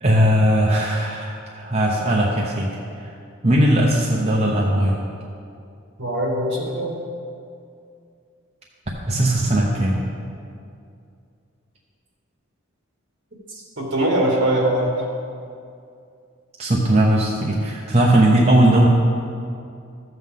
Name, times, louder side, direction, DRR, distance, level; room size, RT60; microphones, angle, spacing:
voice 1, 0.0-2.7 3.0-3.1 3.4-5.0 9.1-10.0 16.6-18.9, right 1 dB, 30° right, -3 dB, 0.8 m, -18 dB
voice 2, 6.0-6.9 13.8-14.9, right 1 dB, 60° right, -2 dB, 2.1 m, -21 dB
13.0 x 8.0 x 3.7 m, 2.4 s
head